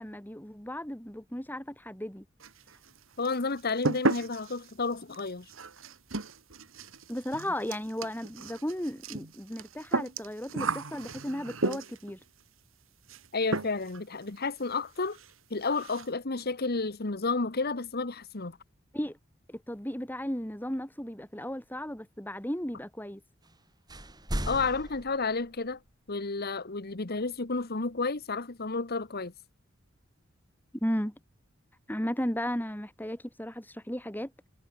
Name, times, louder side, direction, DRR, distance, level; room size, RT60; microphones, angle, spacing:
voice 1, 0.0-2.2 7.1-12.2 18.9-19.2 19.5-23.2 30.8-31.1 31.9-34.3, equal, 10° left, 4.3 m, -35 dB
sound 1, 2.4-3.0 3.2-12.1 13.1-13.3 13.5-14.0 14.3-14.4 14.8-14.9 15.1-15.3 15.6-16.1, right 3 dB, 85° right, 2.3 m, -34 dB
voice 2, 3.2-5.5 13.3-15.2 15.5-18.6 24.5-25.8 26.1-29.3, left 3 dB, 50° left, 1.4 m, -31 dB
sound 2, 23.4-23.6 23.9-25.9, equal, 20° right, 5.6 m, -37 dB
head